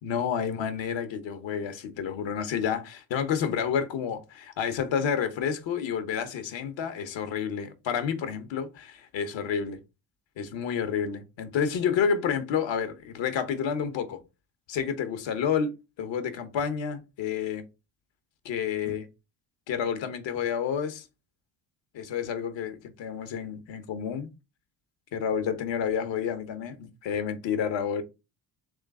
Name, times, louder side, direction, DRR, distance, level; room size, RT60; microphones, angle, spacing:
voice 1, 0.0-9.8 10.4-14.2 14.7-17.6 18.4-19.1 19.7-21.1 22.0-24.3 25.1-28.0, left 7 dB, 65° left, 1.0 m, -30 dB
3.6 x 3.3 x 3.6 m
supercardioid pair, 80°, 48 cm